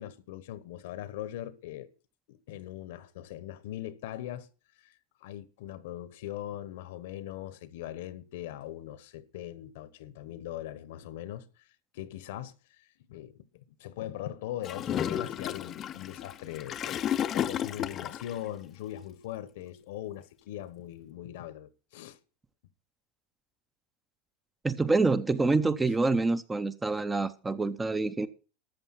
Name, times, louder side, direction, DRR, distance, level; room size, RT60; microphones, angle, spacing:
voice 1, 0.0-1.9 2.3-4.5 4.8-4.9 5.2-11.4 11.9-12.5 13.1-17.0 17.3-22.2, left 12 dB, 75° left, 1.1 m, -40 dB
Gurgling / Toilet flush, 14.6-18.4, left 10 dB, 30° left, 0.5 m, -32 dB
voice 2, 24.6-28.3, right 3 dB, 10° right, 0.6 m, -26 dB
13.0 x 7.1 x 5.7 m
supercardioid pair, 145°, 0 cm